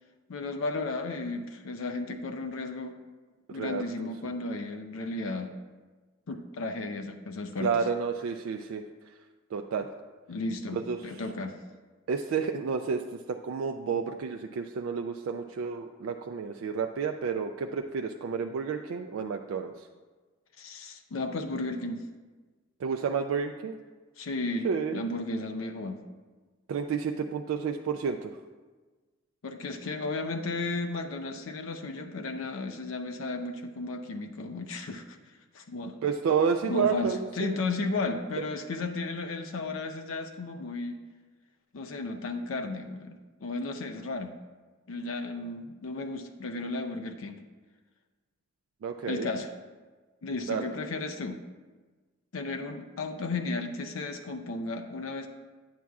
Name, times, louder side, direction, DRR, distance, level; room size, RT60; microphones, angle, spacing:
voice 1, 0.3-3.0 3.5-5.6 6.3-7.7 10.3-11.6 20.6-22.0 24.2-26.0 29.4-35.2 35.5-36.0 36.7-40.9 41.7-44.3 44.9-47.4 49.1-49.5 50.2-51.4 52.3-55.3, left 3 dB, 70° left, 5 dB, 0.5 m, -34 dB
voice 2, 3.5-4.1 7.6-8.8 9.5-9.9 10.7-11.0 12.1-13.0 13.3-19.9 22.8-23.8 24.6-25.0 26.7-28.4 36.0-37.6 48.8-49.3 50.5-50.7, right 6 dB, 70° right, 5 dB, 0.3 m, -30 dB
9.4 x 7.3 x 2.3 m, 1.3 s
head